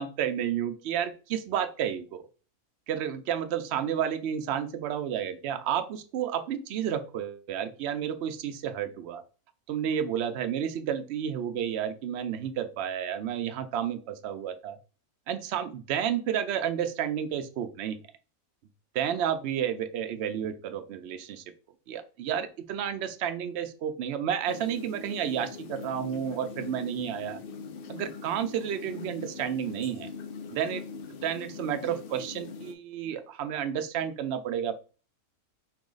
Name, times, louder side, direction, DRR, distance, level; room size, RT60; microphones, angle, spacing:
voice 1, 0.0-2.3 2.9-9.2 9.7-14.8 15.3-18.0 18.9-21.4 21.9-27.4 27.9-30.1 30.5-34.8, right 9 dB, 65° right, 9 dB, 0.8 m, -31 dB
sound 1, 24.5-32.7, left 5 dB, 55° left, 0.6 m, -42 dB
4.6 x 3.0 x 3.8 m, 0.36 s
omnidirectional pair, 1.4 m